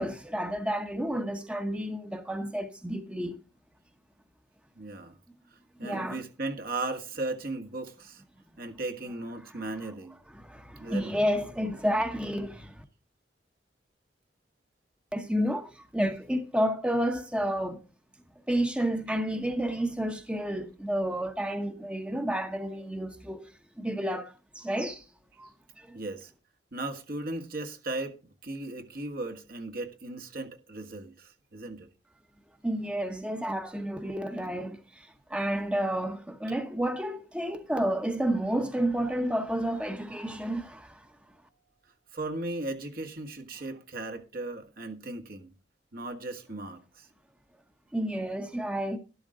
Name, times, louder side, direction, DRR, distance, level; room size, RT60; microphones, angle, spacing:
voice 1, 0.0-3.4 5.8-6.2 9.5-9.6 10.3-12.8 15.1-17.8 18.5-23.5 23.8-25.0 25.4-25.5 25.8-26.0 32.6-41.1 47.9-49.0, equal, 5° right, 1.0 m, -30 dB
voice 2, 4.8-5.2 5.5-8.2 8.6-10.1 10.8-11.2 25.9-26.3 26.7-31.9 42.1-45.5 45.9-47.1, right 2 dB, 55° right, 1.6 m, -37 dB
12.5 x 12.0 x 3.8 m
head